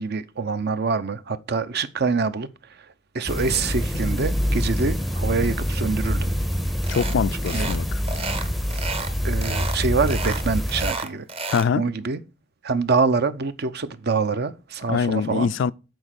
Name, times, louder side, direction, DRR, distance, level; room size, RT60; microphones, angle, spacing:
voice 1, 0.0-2.5 2.8-2.9 3.1-6.3 7.5-7.7 9.2-11.3 11.7-12.2 12.6-15.5, right 4 dB, 55° right, 0.7 m, -25 dB
sound 1, 3.3-10.9, equal, ahead, 0.6 m, -26 dB
sound 2, 6.8-7.2 7.5-7.8 8.0-9.1 9.4-9.8 10.1-11.7, right 3 dB, 30° right, 0.9 m, -31 dB
voice 2, 6.9-7.9 11.5-11.8 14.9-15.7, left 6 dB, 70° left, 0.4 m, -23 dB
7.9 x 4.4 x 6.4 m
head